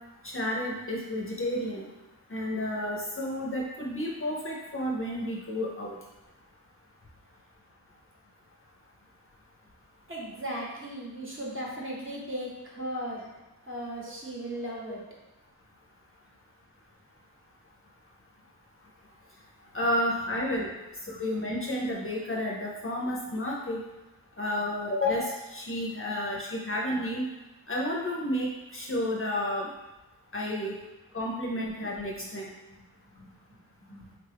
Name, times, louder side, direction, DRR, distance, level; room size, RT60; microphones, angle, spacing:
voice 1, 0.2-1.9 2.3-6.0 19.7-20.7 21.2-23.8 24.4-27.3 27.7-29.7 30.3-30.7 31.1-32.5, left 1 dB, 35° left, -3 dB, 0.6 m, -31 dB
voice 2, 10.1-13.3 13.6-15.0 21.0-21.2 32.2-32.3 33.1-33.6 33.9-34.2, equal, 30° right, -4 dB, 0.9 m, -37 dB
3.5 x 2.4 x 3.4 m, 1.0 s
wide cardioid pair, 75°, 38 cm